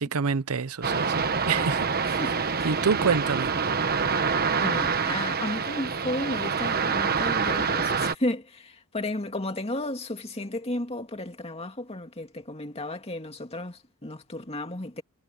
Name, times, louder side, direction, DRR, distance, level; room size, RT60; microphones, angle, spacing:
voice 1, 0.0-2.2 2.6-3.5, right 5 dB, 75° right, 0.7 m, -27 dB
sound 1, 0.8-8.1, right 5 dB, 45° right, 1.3 m, -26 dB
voice 2, 2.2-2.7 4.6-15.0, left 1 dB, 25° left, 2.4 m, -33 dB
head